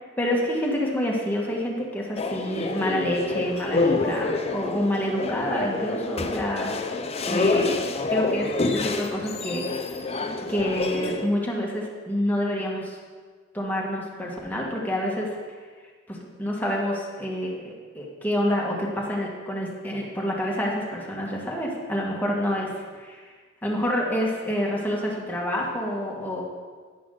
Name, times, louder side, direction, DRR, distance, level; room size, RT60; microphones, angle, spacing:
voice 1, 0.2-6.7 7.3-7.8 8.1-9.7 10.5-13.0 13.5-15.4 16.1-23.3 23.6-26.4, equal, 10° left, -3 dB, 1.8 m, -28 dB
sound 1, 2.2-11.3, left 3 dB, 30° left, 0.7 m, -27 dB
11.0 x 10.5 x 4.0 m, 1.5 s
head